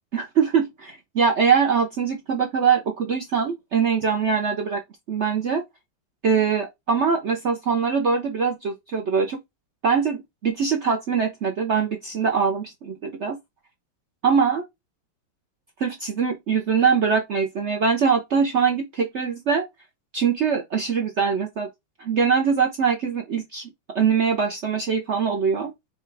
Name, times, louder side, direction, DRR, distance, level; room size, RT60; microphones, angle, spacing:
voice 1, 0.1-4.8 5.1-5.6 6.2-9.4 9.8-13.4 14.2-14.6 15.8-19.6 20.1-21.7 22.0-23.6 23.9-25.7, right 6 dB, 70° right, 0.6 m, -22 dB
4.9 x 2.3 x 4.6 m
omnidirectional pair, 2.2 m